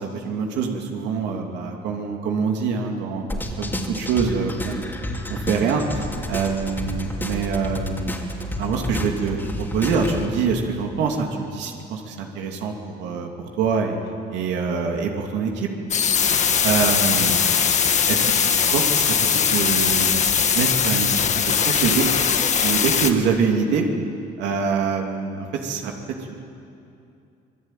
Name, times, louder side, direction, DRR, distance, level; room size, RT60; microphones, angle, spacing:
voice 1, 0.0-4.9 5.3-6.0 6.3-8.1 8.6-14.0 14.3-15.7 16.6-17.4 18.1-22.1 22.6-23.9 24.4-25.9 26.3-26.4, right 5 dB, 85° right, 1 dB, 2.8 m, -25 dB
sound 1, 3.3-10.3, left 1 dB, 10° left, 2.9 m, -30 dB
sound 2, 15.9-23.1, left 7 dB, 40° left, 1.7 m, -20 dB
26.0 x 21.0 x 9.2 m, 2.6 s
cardioid pair, 130°, 18 cm